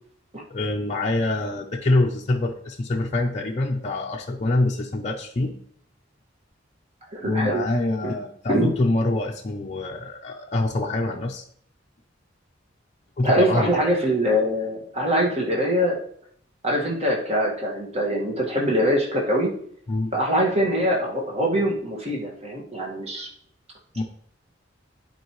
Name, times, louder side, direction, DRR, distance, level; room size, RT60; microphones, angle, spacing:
voice 1, 0.5-5.6 7.2-11.4 13.2-13.9 19.9-20.1 23.9-24.0, left 2 dB, 35° left, -1 dB, 0.6 m, -25 dB
voice 2, 7.1-7.6 8.0-8.1 8.5-8.7 13.2-16.0 16.6-19.5 20.1-23.3, equal, 35° right, -2 dB, 1.8 m, -23 dB
11.0 x 4.5 x 3.1 m, 0.63 s
head